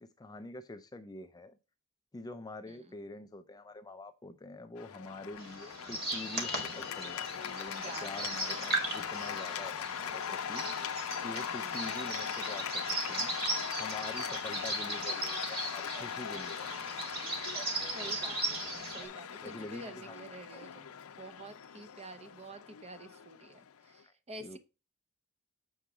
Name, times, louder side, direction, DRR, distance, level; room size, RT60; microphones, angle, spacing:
voice 1, 0.0-1.6 2.1-10.7 11.2-13.3 13.8-16.7 19.4-20.2 20.5-20.6 24.0-24.1 24.4-24.6, left 2 dB, 15° left, 0.4 m, -46 dB
voice 2, 2.7-3.0 7.8-8.7 11.6-11.9 17.9-18.6 18.9-20.8 21.2-24.6, right 2 dB, 30° right, 0.8 m, -49 dB
Cheering / Applause, 4.8-24.0, left 8 dB, 70° left, 0.5 m, -40 dB
sound 1, 5.4-19.1, right 2 dB, 45° right, 1.9 m, -38 dB
7.2 x 4.6 x 4.8 m
head